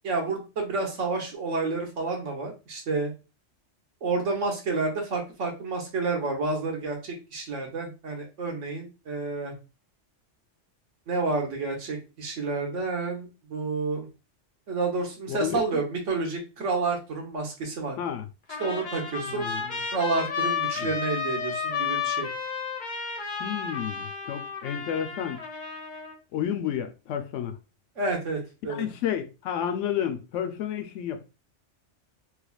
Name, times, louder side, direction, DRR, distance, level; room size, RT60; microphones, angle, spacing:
voice 1, 0.0-3.1 4.0-9.6 11.1-14.1 14.7-18.0 18.6-19.5 19.9-22.3 28.0-28.9, right 3 dB, 80° right, 1.3 m, -29 dB
voice 2, 15.3-15.8 18.0-18.3 19.3-19.8 20.8-20.9 23.4-25.4 26.3-27.6 28.7-31.3, left 9 dB, 80° left, 0.9 m, -31 dB
Trumpet, 18.5-26.2, left 6 dB, 40° left, 0.9 m, -32 dB
3.2 x 3.2 x 2.3 m
omnidirectional pair, 1.3 m